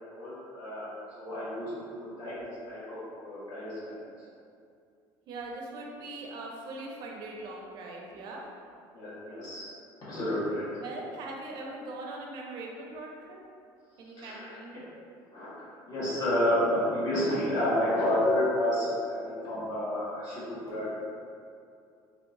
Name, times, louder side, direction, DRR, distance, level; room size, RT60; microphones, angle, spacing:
voice 1, 0.1-0.9 1.2-3.8 8.9-9.6 10.1-10.7 14.2-14.8 15.3-15.5 15.9-21.0, left 1 dB, 40° left, -10 dB, 1.3 m, -30 dB
voice 2, 5.3-8.4 10.8-13.4 14.0-14.8, right 2 dB, 55° right, -1 dB, 0.5 m, -41 dB
3.3 x 2.8 x 2.6 m, 2.4 s
cardioid pair, 160°, 9 cm